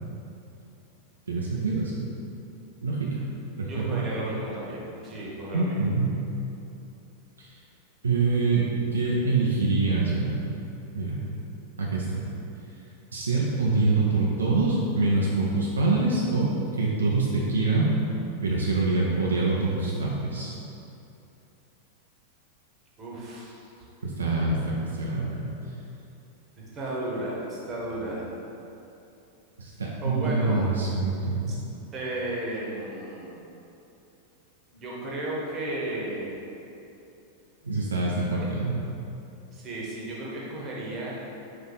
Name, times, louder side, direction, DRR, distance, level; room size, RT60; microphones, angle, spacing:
voice 1, 1.3-2.1 2.8-3.3 3.6-4.1 5.5-6.1 7.4-7.5 8.0-10.5 10.9-11.2 11.8-12.2 13.1-17.9 18.4-20.5 24.0-25.5 29.6-31.5 37.6-38.8, right 3 dB, 70° right, -4 dB, 0.4 m, -25 dB
voice 2, 3.7-5.8 23.0-23.6 26.6-28.3 30.0-30.7 31.5-31.6 31.9-33.4 34.7-36.4 39.5-41.1, right 1 dB, 25° right, -5 dB, 1.0 m, -34 dB
4.3 x 2.5 x 4.0 m, 2.8 s
figure-of-eight pair, 90°, 0 cm